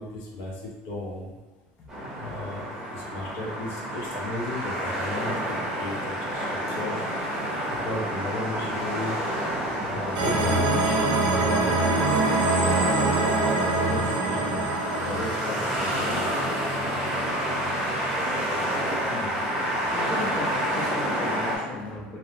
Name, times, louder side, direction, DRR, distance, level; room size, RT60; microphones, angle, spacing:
voice 1, 0.0-1.3 2.2-5.4 5.7-7.0 7.7-9.2 9.8-10.9 11.2-11.8 12.1-12.3 13.4-14.6 15.0-16.2, left 2 dB, 60° left, -2 dB, 0.7 m, -35 dB
sound 1, 1.9-21.6, equal, 5° right, 0.8 m, -29 dB
sound 2, 10.2-17.2, right 2 dB, 80° right, 0.5 m, -25 dB
voice 2, 19.1-19.4 19.8-22.2, left 2 dB, 20° left, -4 dB, 0.4 m, -36 dB
2.6 x 2.0 x 3.0 m, 1.2 s
cardioid pair, 165°, 4 cm